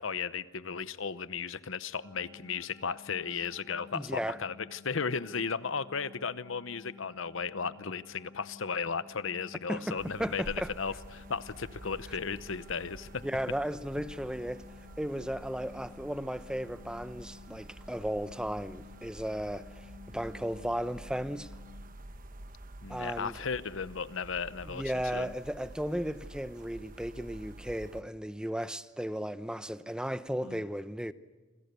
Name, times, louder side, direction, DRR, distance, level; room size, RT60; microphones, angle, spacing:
voice 1, 0.0-13.2 22.8-25.3 30.4-30.6, left 5 dB, 85° left, 0.9 m, -35 dB
sound 1, 2.0-21.8, left 5 dB, 10° left, 5.5 m, -54 dB
voice 2, 3.9-4.4 9.7-10.7 13.2-14.6 15.0-21.5 22.9-23.4 24.7-31.1, equal, 5° right, 0.8 m, -35 dB
sound 2, 10.0-28.0, right 1 dB, 45° right, 1.0 m, -49 dB
27.5 x 26.5 x 6.9 m
head